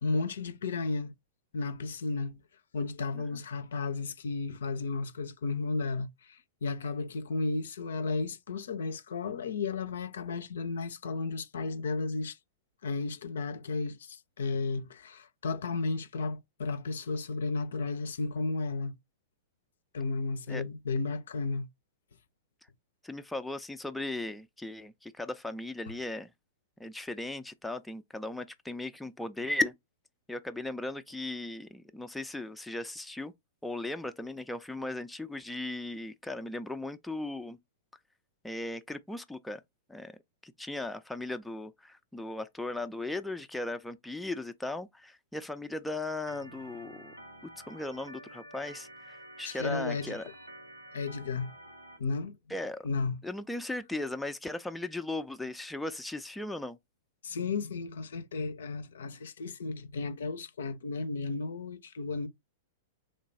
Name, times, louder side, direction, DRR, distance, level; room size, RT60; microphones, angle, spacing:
voice 1, 0.0-1.1 1.5-2.4 2.7-12.4 12.8-19.0 19.9-21.7 49.4-50.2 50.9-51.5 52.0-52.4 52.8-53.2 57.2-62.3, left 3 dB, 65° left, 0.4 m, -33 dB
voice 2, 23.0-26.3 26.8-29.7 30.3-33.3 33.6-37.6 38.4-39.6 39.9-40.1 40.4-47.1 47.6-50.3 52.5-52.8 53.2-56.8, left 2 dB, 5° left, 0.3 m, -37 dB
Organ, 46.3-52.0, right 1 dB, 90° right, 0.6 m, -50 dB
3.2 x 2.2 x 4.0 m
figure-of-eight pair, 100°, 0 cm